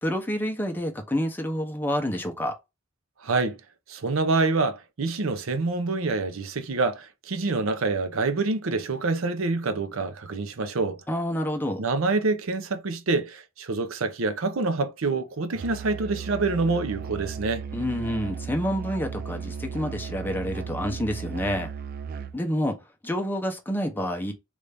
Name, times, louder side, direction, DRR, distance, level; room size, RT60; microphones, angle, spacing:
voice 1, 0.0-2.5 11.1-11.8 17.7-21.7 22.3-22.8 23.0-24.3, equal, 10° left, 0.7 m, -28 dB
voice 2, 3.2-3.6 3.9-11.0 11.8-17.6, right 3 dB, 85° right, 0.6 m, -26 dB
Musical instrument, 15.5-22.5, right 6 dB, 45° right, 0.3 m, -36 dB
3.3 x 2.5 x 3.4 m
head